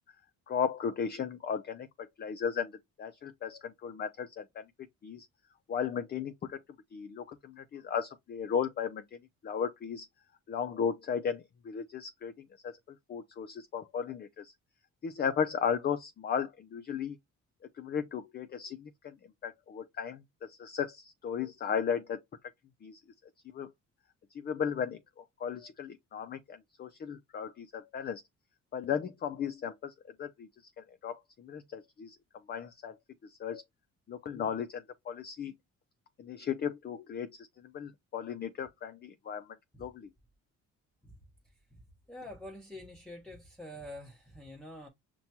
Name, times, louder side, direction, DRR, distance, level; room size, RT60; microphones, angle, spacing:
voice 1, 0.5-1.9 2.2-4.6 5.0-5.3 5.7-6.6 6.9-9.0 9.4-10.1 10.5-12.3 12.6-12.8 13.1-14.5 15.0-17.2 17.8-19.1 19.4-22.2 22.8-23.0 23.5-23.7 24.3-25.0 25.4-28.2 28.7-29.9 30.2-30.5 30.8-32.2 32.5-32.9 33.2-33.6 34.1-35.5 36.2-37.5 37.7-39.5 39.8-40.1, left 7 dB, 35° left, 0.4 m, -35 dB
voice 2, 42.1-44.9, left 1 dB, 5° left, 0.8 m, -46 dB
5.7 x 2.2 x 2.8 m
cardioid pair, 90°, 30 cm